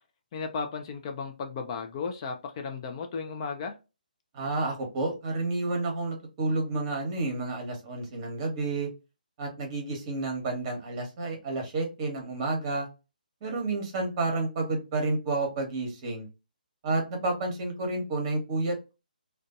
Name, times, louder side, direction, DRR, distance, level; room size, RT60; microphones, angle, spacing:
voice 1, 0.3-3.7, left 5 dB, 35° left, 0.4 m, -35 dB
voice 2, 4.3-8.9 9.4-12.9 13.4-16.3 16.8-18.9, right 2 dB, 30° right, 1.0 m, -30 dB
2.5 x 2.2 x 2.4 m
figure-of-eight pair, 145°, 5 cm